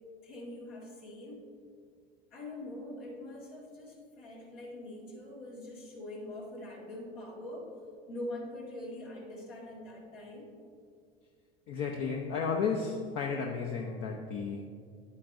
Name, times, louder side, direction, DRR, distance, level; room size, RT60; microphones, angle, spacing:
voice 1, 0.2-1.4 2.3-7.7 8.1-10.5, left 1 dB, 70° left, -3 dB, 2.0 m, -43 dB
voice 2, 11.7-14.7, left 5 dB, 50° left, 1 dB, 0.8 m, -33 dB
9.5 x 8.5 x 2.6 m, 2.3 s
hypercardioid pair, 75°, 31 cm